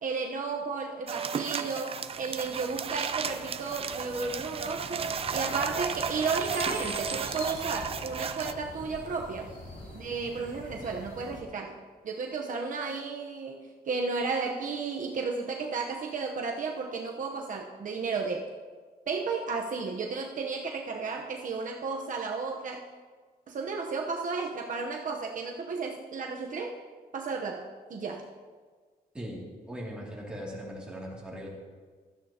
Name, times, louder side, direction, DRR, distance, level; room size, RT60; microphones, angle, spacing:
voice 1, 0.0-9.5 9.9-11.8 12.0-18.5 19.1-22.8 23.5-26.8 27.1-28.2, right 4 dB, 50° right, 1 dB, 0.9 m, -33 dB
sound 1, 1.1-8.5, right 6 dB, 35° right, 0.5 m, -34 dB
sound 2, 2.0-11.4, left 1 dB, 50° left, 3.1 m, -45 dB
voice 2, 29.1-31.5, equal, 5° right, -5 dB, 2.5 m, -39 dB
16.0 x 13.0 x 2.9 m, 1.5 s
wide cardioid pair, 160°, 17 cm